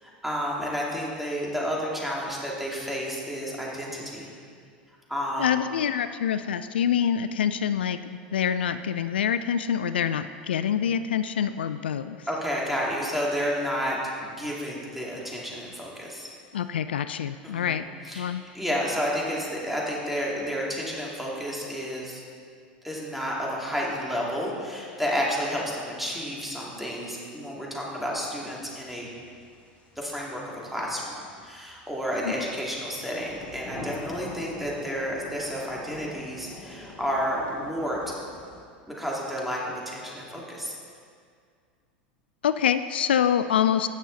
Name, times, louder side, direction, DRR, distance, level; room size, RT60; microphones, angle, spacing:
voice 1, 0.0-4.3 5.1-5.5 12.3-16.3 17.4-18.3 18.5-22.2 22.8-29.1 30.0-38.2 38.9-40.7, equal, 5° right, -4 dB, 2.8 m, -31 dB
voice 2, 5.4-8.0 8.3-12.3 16.5-18.4 32.2-32.3 42.4-43.9, left 8 dB, 80° left, 12 dB, 0.3 m, -26 dB
sound 1, 28.7-38.6, left 2 dB, 25° left, 2.2 m, -43 dB
17.0 x 6.3 x 4.1 m, 2.2 s
hypercardioid pair, 90°, 5 cm